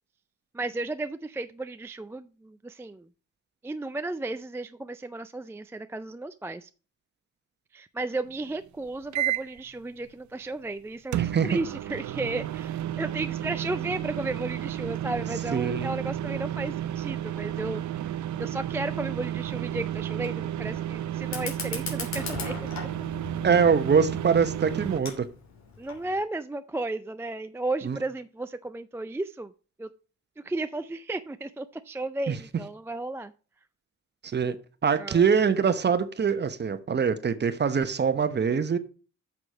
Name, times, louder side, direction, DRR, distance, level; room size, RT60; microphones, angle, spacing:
voice 1, 0.5-3.1 3.6-6.7 7.7-18.1 18.4-22.7 25.8-29.5 29.8-29.9 30.4-33.3 35.0-35.3, right 2 dB, 10° right, 0.4 m, -34 dB
sound 1, 9.1-9.6 11.1-25.0, right 11 dB, 70° right, 0.7 m, -32 dB
voice 2, 11.2-11.6 15.5-15.9 23.4-25.3 27.8-28.0 32.3-32.4 34.2-34.6 34.8-38.8, right 6 dB, 35° right, 1.0 m, -23 dB
Fire, 21.2-26.2, left 5 dB, 65° left, 3.3 m, -39 dB
8.1 x 6.1 x 5.8 m
cardioid pair, 90°, 30 cm